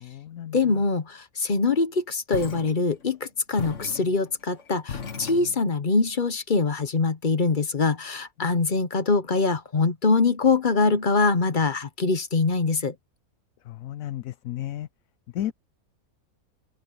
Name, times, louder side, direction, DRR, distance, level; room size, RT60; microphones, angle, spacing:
voice 1, 0.0-0.6 8.4-8.5 13.7-14.9 15.3-15.5, left 12 dB, 70° left, 1.0 m, -33 dB
voice 2, 0.5-12.9, left 4 dB, 40° left, 1.0 m, -23 dB
sound 1, 2.3-3.2 3.6-5.9, left 6 dB, 55° left, 2.0 m, -37 dB
open air
omnidirectional pair, 1.6 m